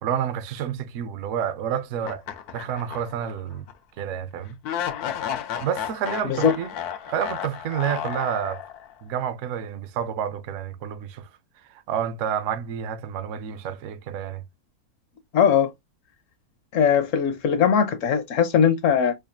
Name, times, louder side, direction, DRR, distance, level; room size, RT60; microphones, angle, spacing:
voice 1, 0.0-2.2 2.5-3.7 4.0-4.6 5.6-6.7 7.1-8.6 9.0-11.3 11.9-14.4, right 9 dB, 65° right, 0.8 m, -29 dB
sound 1, 2.0-3.3 3.7-3.8 4.6-8.9, left 9 dB, 85° left, 1.1 m, -32 dB
voice 2, 6.2-6.5 15.3-15.7 16.7-19.2, left 7 dB, 65° left, 0.9 m, -20 dB
5.0 x 2.3 x 2.5 m
omnidirectional pair, 1.6 m